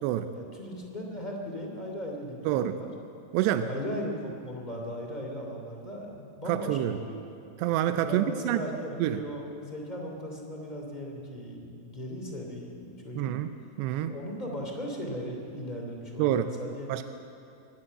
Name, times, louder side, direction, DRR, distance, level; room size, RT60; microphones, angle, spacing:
voice 1, 0.3-2.9 3.6-7.2 8.0-13.3 14.1-16.9, equal, 15° left, 0 dB, 1.5 m, -37 dB
voice 2, 2.5-2.8 3.3-3.7 6.5-7.0 7.6-8.6 9.0-9.2 13.2-13.5 13.8-14.1 16.2-16.5 16.9-17.0, right 12 dB, 85° right, 9 dB, 2.5 m, -27 dB
23.5 x 14.0 x 8.8 m, 2.7 s
omnidirectional pair, 5.5 m